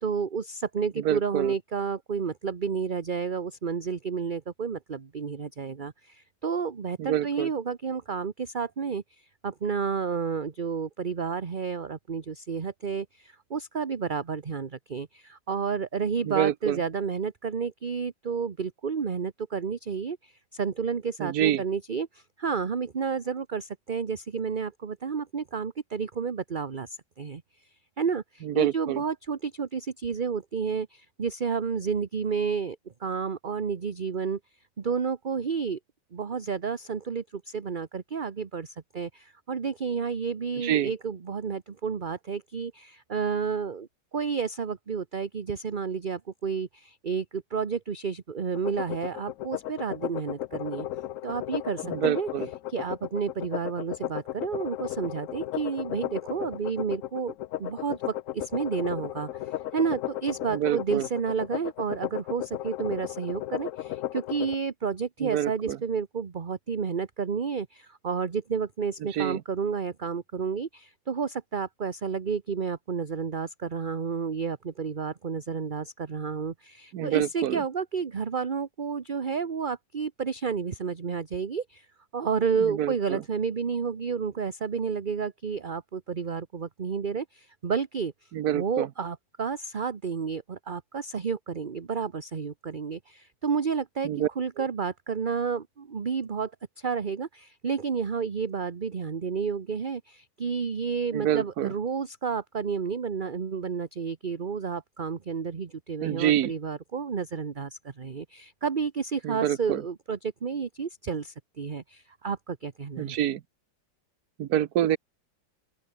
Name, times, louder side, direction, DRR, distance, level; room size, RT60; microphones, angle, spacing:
voice 1, 0.0-27.4 28.0-34.4 34.8-35.8 36.1-50.9 51.2-52.3 52.7-81.9 82.1-94.1 94.4-96.5 96.8-113.2, right 6 dB, 35° right, 1.0 m, -31 dB
voice 2, 1.0-1.5 7.0-7.5 16.3-16.8 21.2-21.6 28.4-29.0 40.6-40.9 51.8-52.5 60.5-61.0 65.2-65.8 69.1-69.4 76.9-77.6 82.6-83.2 88.3-88.9 94.0-94.3 94.6-94.7 101.1-101.7 106.0-106.5 109.2-109.8 113.0-113.4 114.4-115.0, right 11 dB, 60° right, 1.2 m, -27 dB
sound 1, 48.5-64.5, left 13 dB, 85° left, 0.7 m, -35 dB
open air
omnidirectional pair, 2.0 m